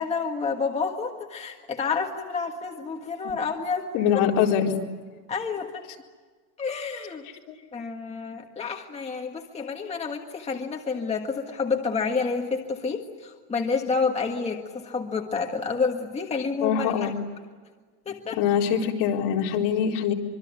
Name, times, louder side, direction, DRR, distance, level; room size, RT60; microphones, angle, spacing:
voice 1, 0.0-3.9 5.3-5.9 6.6-7.2 7.7-17.2 18.0-18.4, left 5 dB, 15° left, 2 dB, 1.6 m, -29 dB
voice 2, 3.9-4.8 7.5-7.6 16.6-17.2 18.4-20.1, left 8 dB, 55° left, 0 dB, 4.4 m, -23 dB
26.0 x 24.0 x 9.5 m, 1.5 s
cardioid pair, 160°, 48 cm